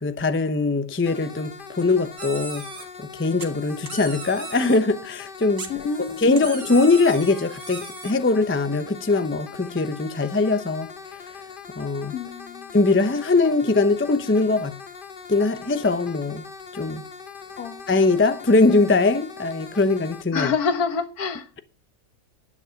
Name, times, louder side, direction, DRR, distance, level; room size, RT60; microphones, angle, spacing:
voice 1, 0.0-2.7 3.0-5.7 6.2-10.9 11.8-12.1 12.7-14.7 15.3-16.4 16.7-17.0 17.9-20.5, left 3 dB, 15° left, 0.4 m, -21 dB
sound 1, 1.1-20.2, left 6 dB, 35° left, 1.0 m, -41 dB
sound 2, 2.2-2.8 3.4-4.8 5.6-8.1, right 4 dB, 50° right, 2.0 m, -38 dB
voice 2, 5.7-6.4 12.1-12.7 17.6-17.9 20.3-21.5, left 5 dB, 70° left, 1.7 m, -27 dB
11.5 x 9.9 x 5.7 m
omnidirectional pair, 1.7 m